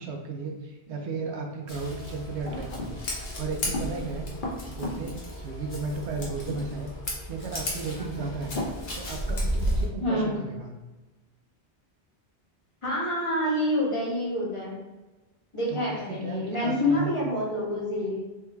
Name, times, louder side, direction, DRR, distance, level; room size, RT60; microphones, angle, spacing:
voice 1, 0.0-4.3 4.7-6.9 7.3-8.6 9.0-10.7 15.7-17.2, right 4 dB, 85° right, 2 dB, 0.9 m, -35 dB
Scissors, 1.7-9.9, equal, 50° left, 1.0 m, -33 dB
voice 2, 10.0-10.3 12.8-14.8 15.5-18.2, left 1 dB, 30° left, -8 dB, 1.6 m, -27 dB
3.5 x 3.1 x 3.4 m, 1.1 s
omnidirectional pair, 1.1 m